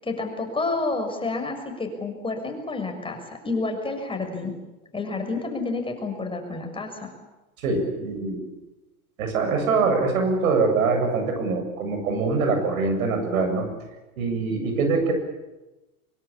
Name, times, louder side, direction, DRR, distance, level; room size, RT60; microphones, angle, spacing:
voice 1, 0.0-4.5 4.9-7.1, left 3 dB, 10° left, 3 dB, 6.5 m, -29 dB
voice 2, 7.6-8.4 9.2-13.7 14.2-15.1, right 4 dB, 70° right, 5 dB, 7.7 m, -23 dB
24.0 x 23.5 x 8.7 m, 1.1 s
hypercardioid pair, 100°, 43 cm